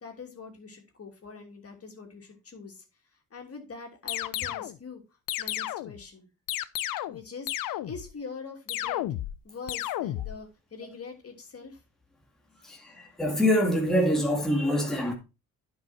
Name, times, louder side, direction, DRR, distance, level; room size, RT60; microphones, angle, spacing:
voice 1, 0.0-2.8 3.3-5.0 5.4-6.3 7.1-9.0 9.4-11.8, left 5 dB, 45° left, 2.9 m, -43 dB
sound 1, 4.1-4.8 5.3-6.0 6.5-7.2 7.5-8.1 8.7-9.4 9.7-10.4, left 14 dB, 80° left, 0.6 m, -32 dB
voice 2, 12.6-15.1, equal, ahead, 2.0 m, -25 dB
10.0 x 5.5 x 4.4 m
cardioid pair, 80°, 33 cm